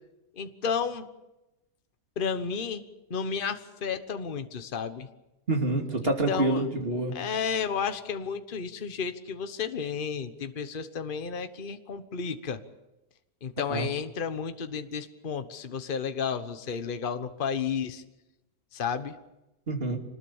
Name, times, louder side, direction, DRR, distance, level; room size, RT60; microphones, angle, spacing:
voice 1, 0.4-1.1 2.2-2.8 3.1-5.1 6.0-6.7 7.1-12.6 13.4-18.0 18.7-19.2, left 6 dB, 40° left, 10 dB, 1.2 m, -32 dB
voice 2, 5.5-7.1 13.7-13.9 19.7-20.0, right 2 dB, 40° right, 2 dB, 2.9 m, -27 dB
25.0 x 20.0 x 7.2 m, 0.96 s
omnidirectional pair, 1.5 m